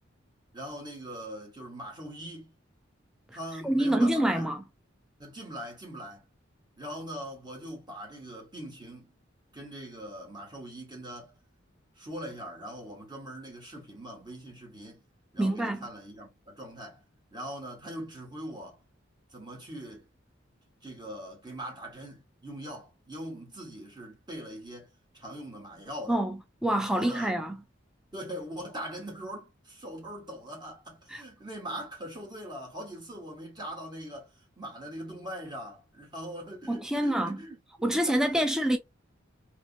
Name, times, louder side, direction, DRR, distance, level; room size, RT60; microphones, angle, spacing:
voice 1, 0.5-2.5 3.3-4.5 5.2-6.3 6.8-9.1 9.5-11.3 12.0-15.0 15.3-17.0 17.3-18.8 19.3-20.1 20.8-24.9 25.1-26.2 26.9-27.4 28.1-38.5, equal, 20° right, 1.6 m, -41 dB
voice 2, 3.6-4.6 15.4-15.9 26.1-26.4 26.6-27.6 31.1-31.2 36.7-37.4 37.8-38.8, right 1 dB, 5° right, 0.5 m, -26 dB
3.2 x 3.1 x 2.8 m
head